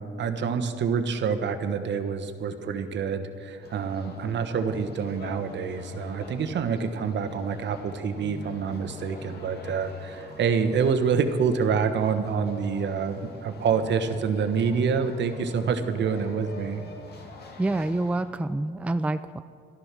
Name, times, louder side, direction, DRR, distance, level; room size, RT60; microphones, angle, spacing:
voice 1, 0.0-16.8, right 6 dB, 65° right, 8 dB, 1.1 m, -27 dB
sound 1, 3.6-18.2, left 2 dB, 55° left, 2.1 m, -45 dB
voice 2, 17.6-19.4, right 2 dB, 5° right, 11 dB, 0.4 m, -27 dB
13.0 x 11.5 x 6.0 m, 2.2 s
cardioid pair, 90°, 20 cm